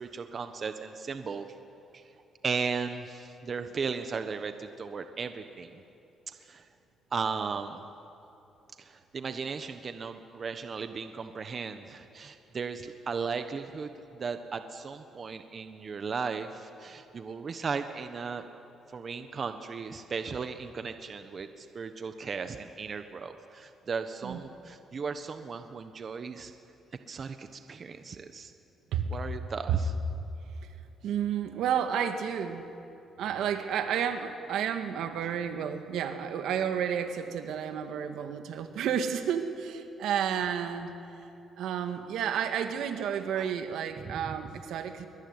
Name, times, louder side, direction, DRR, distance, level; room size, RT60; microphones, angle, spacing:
voice 1, 0.0-1.5 1.9-2.0 2.4-5.8 6.3-6.7 7.1-7.8 8.8-18.4 18.9-26.5 27.1-28.5 29.1-29.9 35.1-35.3 43.3-43.5 44.0-44.4, right 5 dB, 45° right, 8 dB, 1.3 m, -36 dB
voice 2, 31.0-32.6 33.2-40.9 41.6-45.1, right 8 dB, 80° right, 7 dB, 2.0 m, -31 dB
23.0 x 23.0 x 9.8 m, 2.9 s
cardioid pair, 90°, 0 cm